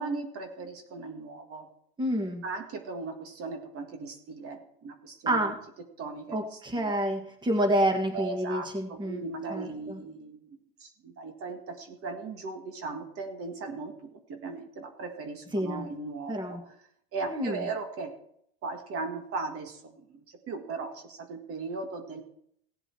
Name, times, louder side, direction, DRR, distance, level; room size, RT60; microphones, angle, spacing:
voice 1, 0.0-1.7 2.4-5.5 6.0-6.9 8.1-16.6 17.1-18.2 18.6-22.2, right 3 dB, 45° right, 5 dB, 1.9 m, -38 dB
voice 2, 2.0-2.4 5.3-5.6 6.3-9.2 9.5-10.0 15.5-15.9 16.3-16.6 17.3-17.7, right 1 dB, 15° right, 5 dB, 2.0 m, -28 dB
17.0 x 7.8 x 4.6 m, 0.69 s
supercardioid pair, 105°, 32 cm